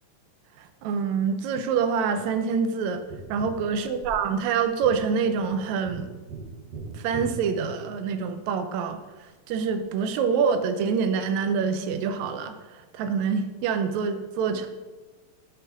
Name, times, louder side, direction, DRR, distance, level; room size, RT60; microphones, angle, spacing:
voice 1, 0.6-3.0 3.3-6.1 6.9-9.0 9.5-12.6 12.9-14.7, right 6 dB, 75° right, 9 dB, 1.8 m, -26 dB
Tap, 3.1-8.4 11.0-11.1, right 4 dB, 60° right, 2.4 m, -41 dB
7.2 x 5.4 x 5.8 m, 1.2 s
omnidirectional pair, 3.5 m